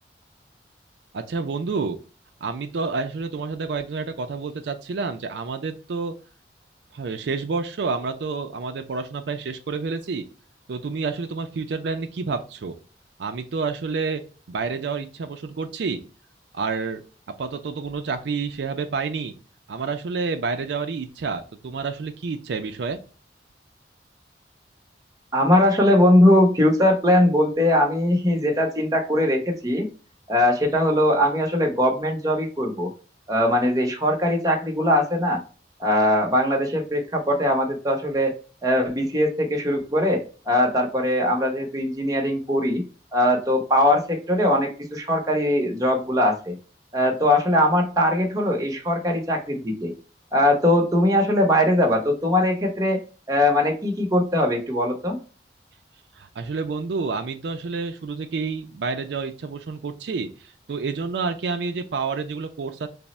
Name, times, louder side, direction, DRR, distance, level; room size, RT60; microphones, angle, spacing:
voice 1, 1.1-2.0 2.4-6.1 6.9-10.3 10.7-12.8 13.2-14.2 14.5-16.0 16.5-17.0 17.4-19.3 19.7-23.0 56.1-62.9, right 4 dB, 75° right, 7 dB, 0.4 m, -29 dB
voice 2, 25.3-29.9 30.3-32.9 33.3-35.4 35.8-38.3 38.6-42.8 43.1-46.6 46.9-49.9 50.3-53.0 53.3-55.2, left 1 dB, 20° right, 1 dB, 0.7 m, -21 dB
3.4 x 2.0 x 4.0 m, 0.37 s
head